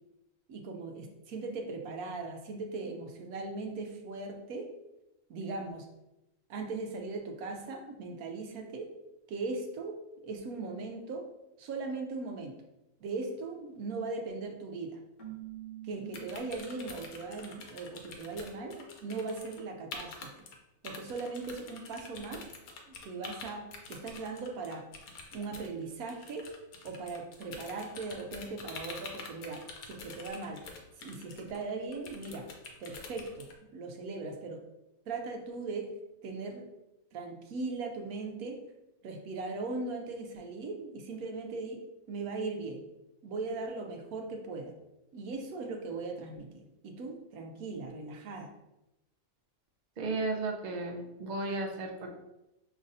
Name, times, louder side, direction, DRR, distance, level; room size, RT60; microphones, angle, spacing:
voice 1, 0.5-4.7 5.3-5.9 6.5-8.9 9.3-10.0 10.2-11.3 11.6-12.5 13.0-15.0 15.8-20.4 20.8-22.4 22.9-24.9 25.3-26.5 26.8-30.6 31.0-32.5 32.8-34.6 35.1-35.9 36.2-36.7 37.1-38.6 39.0-41.8 42.1-42.8 43.2-44.7 45.1-48.5, right 3 dB, 80° right, 3 dB, 1.1 m, -39 dB
Keyboard (musical), 15.2-17.2, right 14 dB, 65° left, 1.1 m, -46 dB
sound 1, 16.1-19.6 19.9-20.6 20.8-33.5, left 4 dB, 80° left, 1.1 m, -47 dB
voice 2, 50.0-52.1, right 2 dB, 50° right, 1 dB, 0.5 m, -34 dB
5.3 x 3.1 x 2.5 m, 0.93 s
omnidirectional pair, 1.5 m